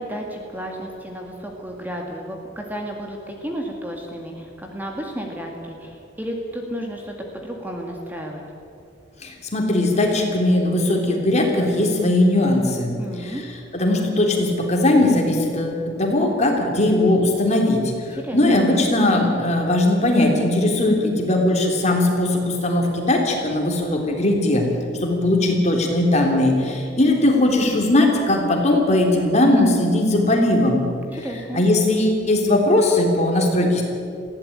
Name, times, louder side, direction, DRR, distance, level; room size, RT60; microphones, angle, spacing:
voice 1, 0.0-8.4 13.0-13.4 18.1-18.7 31.1-31.6, equal, 10° right, 1 dB, 1.9 m, -32 dB
voice 2, 9.2-12.9 13.2-13.4 13.7-24.7 25.0-30.8 31.5-33.8, left 1 dB, 35° left, 1 dB, 3.5 m, -19 dB
20.0 x 15.5 x 8.8 m, 2.5 s
head